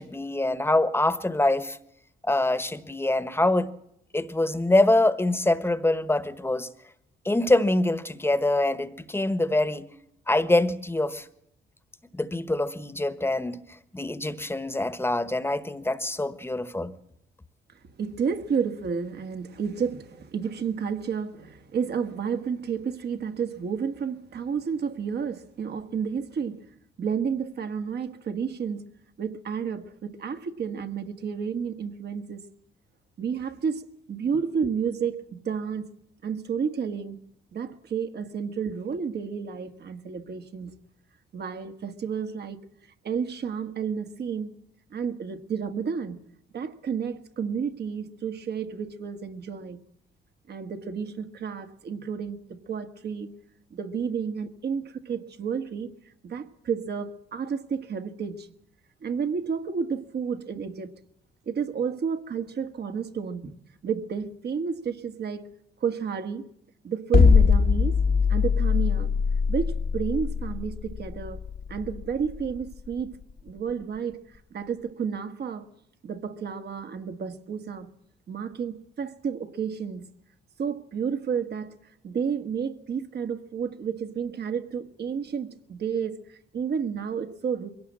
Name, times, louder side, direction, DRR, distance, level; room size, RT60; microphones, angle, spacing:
voice 1, 0.0-1.8 2.3-3.7 4.1-6.7 7.2-9.8 10.3-11.2 12.1-13.6 13.9-16.9, left 2 dB, 10° left, 1.3 m, -24 dB
voice 2, 18.0-26.7 27.0-28.8 29.2-32.5 33.2-35.9 36.2-37.2 37.5-40.7 41.3-42.6 43.0-44.6 44.9-46.2 46.5-49.8 50.5-53.3 53.7-55.9 56.2-58.5 59.0-60.9 61.4-63.5 63.8-65.5 65.8-66.5 66.8-68.0 68.3-69.1 69.5-71.4 71.7-73.2 73.4-75.6 76.0-77.9 78.3-80.0 80.6-81.7 82.0-87.7, right 6 dB, 55° right, 1.7 m, -31 dB
sound 1, 67.1-73.3, left 5 dB, 45° left, 1.3 m, -21 dB
22.0 x 17.5 x 7.5 m
cardioid pair, 90°, 20 cm